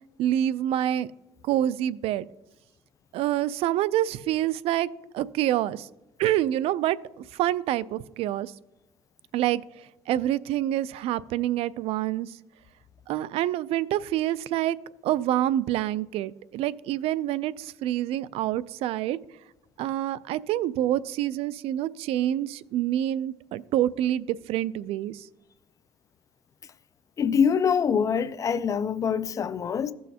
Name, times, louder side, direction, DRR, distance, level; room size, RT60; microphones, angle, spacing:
voice 1, 0.2-1.1 1.4-2.3 3.1-5.9 6.2-8.5 9.3-12.4 13.1-14.8 15.0-19.2 19.8-25.3, right 12 dB, 70° right, 0.3 m, -27 dB
voice 2, 27.2-29.9, left 7 dB, 30° left, 0.4 m, -24 dB
15.0 x 6.3 x 2.8 m
cardioid pair, 125°, 11 cm